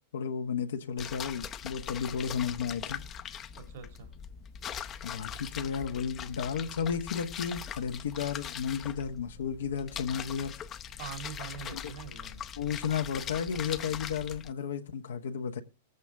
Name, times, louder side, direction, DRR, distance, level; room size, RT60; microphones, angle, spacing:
voice 1, 0.1-3.0 5.0-10.5 11.7-11.8 12.6-15.6, left 7 dB, 90° left, 1.2 m, -33 dB
sound 1, 1.0-14.5, left 8 dB, 30° left, 0.6 m, -41 dB
voice 2, 3.5-4.1 11.0-12.4, right 7 dB, 65° right, 2.2 m, -43 dB
18.0 x 8.2 x 3.5 m
hypercardioid pair, 135°, 0 cm